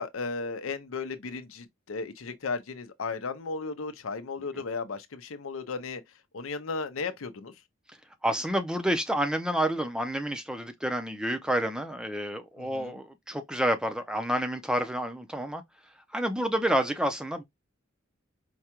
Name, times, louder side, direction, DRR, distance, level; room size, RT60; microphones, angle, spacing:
voice 1, 0.0-6.0 6.3-7.5 12.6-13.0, left 4 dB, 85° left, 0.6 m, -35 dB
voice 2, 8.2-15.6 16.1-17.4, right 1 dB, 5° right, 0.5 m, -29 dB
4.8 x 2.2 x 2.8 m
head